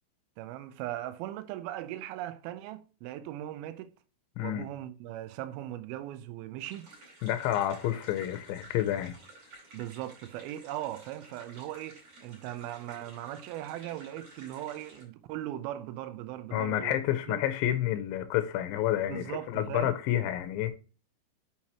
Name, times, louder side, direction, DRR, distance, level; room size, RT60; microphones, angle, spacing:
voice 1, 0.4-3.9 4.4-6.9 9.7-17.0 17.3-17.4 19.1-19.9, right 13 dB, 85° right, 2.4 m, -39 dB
voice 2, 4.4-4.7 7.2-9.2 16.5-20.7, left 12 dB, 80° left, 2.3 m, -29 dB
sound 1, 6.6-15.0, right 2 dB, 45° right, 3.4 m, -53 dB
6.5 x 5.6 x 2.9 m
omnidirectional pair, 4.4 m